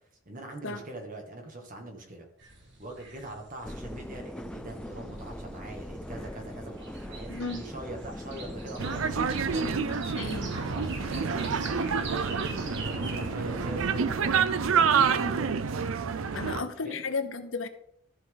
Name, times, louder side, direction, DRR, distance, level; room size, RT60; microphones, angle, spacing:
voice 1, 0.3-2.3 2.8-12.3 12.8-15.6 16.2-17.0, right 1 dB, 40° right, 1.9 m, -43 dB
sound 1, 2.4-16.1, right 3 dB, 60° right, 1.9 m, -47 dB
sound 2, 3.6-14.4, equal, 5° left, 0.4 m, -41 dB
voice 2, 7.3-7.6 9.8-10.5 16.3-17.7, left 4 dB, 70° left, 1.0 m, -34 dB
sound 3, 8.8-16.6, right 6 dB, 85° right, 0.5 m, -28 dB
13.5 x 5.6 x 3.9 m
head